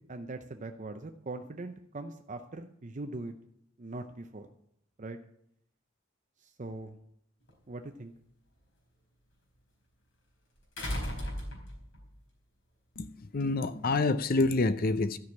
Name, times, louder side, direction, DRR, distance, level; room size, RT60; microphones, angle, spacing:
voice 1, 0.1-3.3 3.8-4.5 5.0-5.2 6.4-7.0 7.7-8.1, right 2 dB, 40° right, 0.7 m, -41 dB
sound 1, 7.5-7.6 10.8-12.1 13.4-13.5, equal, 90° left, 4.4 m, -35 dB
voice 2, 13.3-15.2, left 3 dB, 50° left, 0.6 m, -27 dB
13.0 x 6.2 x 8.5 m
head